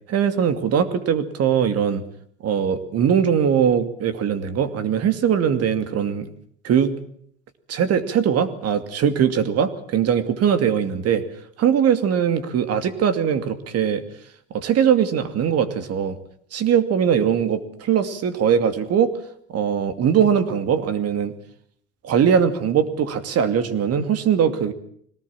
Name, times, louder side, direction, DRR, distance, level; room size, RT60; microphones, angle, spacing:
voice 1, 0.1-2.0 2.4-6.3 6.6-6.9 7.7-11.2 11.6-14.0 14.5-16.2 16.5-19.1 19.5-21.3 22.0-24.7, right 8 dB, 45° right, 11 dB, 2.6 m, -21 dB
22.5 x 19.0 x 7.4 m, 0.65 s
supercardioid pair, 95°, 33 cm